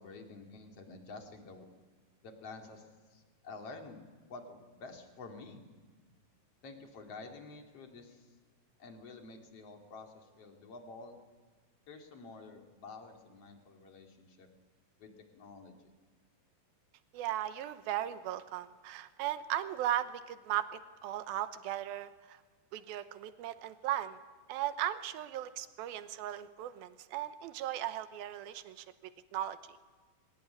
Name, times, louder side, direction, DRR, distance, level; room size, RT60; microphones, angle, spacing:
voice 1, 0.0-1.7 2.2-5.6 6.6-8.3 8.8-11.2 11.9-14.5 15.0-15.8, left 3 dB, 45° left, 3 dB, 3.3 m, -50 dB
voice 2, 17.1-22.4 22.7-24.2 24.5-28.9 29.3-29.6, right 12 dB, 85° right, 12 dB, 2.9 m, -37 dB
23.5 x 20.0 x 9.9 m, 1.4 s
omnidirectional pair, 4.2 m